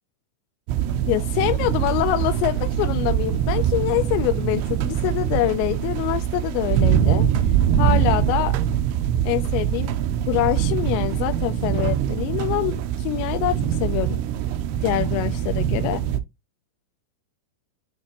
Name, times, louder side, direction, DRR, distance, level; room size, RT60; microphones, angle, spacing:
sound 1, 0.7-16.2, right 10 dB, 80° right, 2.4 m, -23 dB
voice 1, 1.1-7.2 7.8-8.6 9.2-9.9 10.3-14.2 14.8-16.0, left 16 dB, 85° left, 2.8 m, -25 dB
9.8 x 3.3 x 2.9 m
omnidirectional pair, 5.2 m